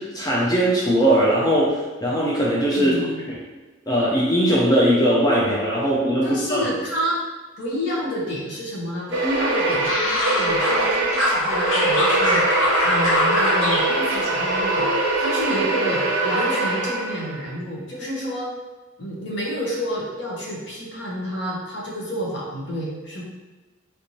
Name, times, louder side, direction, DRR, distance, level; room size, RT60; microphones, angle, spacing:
voice 1, 0.0-2.9 3.9-6.7, equal, 20° left, -6 dB, 0.4 m, -20 dB
voice 2, 2.7-3.2 6.2-7.2 7.6-12.4 12.8-18.5 19.0-23.2, equal, 60° left, -4 dB, 0.8 m, -29 dB
sound 1, 9.1-17.4, right 2 dB, 60° right, 0.5 m, -23 dB
sound 2, 9.4-10.9 11.1-13.8 14.1-14.9 15.2-15.6, left 1 dB, 80° left, 1.2 m, -23 dB
3.3 x 2.6 x 3.0 m, 1.2 s
head